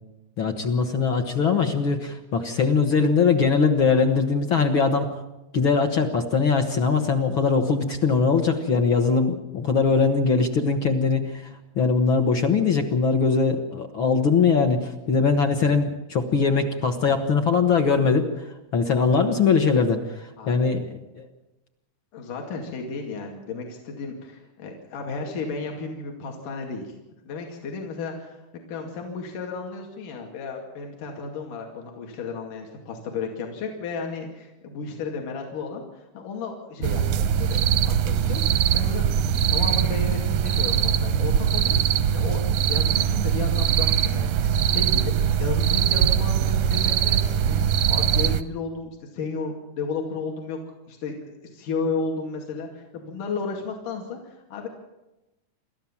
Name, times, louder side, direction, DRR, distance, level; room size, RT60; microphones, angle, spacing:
voice 1, 0.4-5.1 5.5-11.5 11.7-18.3 18.7-21.3, left 5 dB, 55° left, 5 dB, 1.5 m, -21 dB
voice 2, 20.4-20.7 22.1-26.9 27.3-41.8 42.1-50.6 50.9-54.7, left 4 dB, 70° left, 1 dB, 3.8 m, -33 dB
sound 1, 36.8-48.4, right 9 dB, 75° right, 1.5 m, -22 dB
28.0 x 13.5 x 7.3 m, 0.98 s
omnidirectional pair, 3.8 m